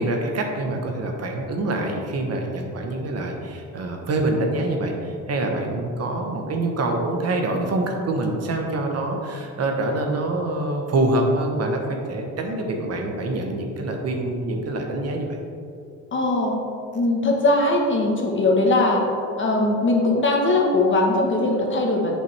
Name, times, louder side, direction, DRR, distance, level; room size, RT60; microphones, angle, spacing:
voice 1, 0.0-15.4, right 2 dB, 55° right, 2 dB, 1.1 m, -25 dB
voice 2, 16.1-16.5 16.9-19.0 19.4-22.1, left 2 dB, 40° left, 0 dB, 1.3 m, -20 dB
7.8 x 5.7 x 3.4 m, 2.4 s
cardioid pair, 90°, 30 cm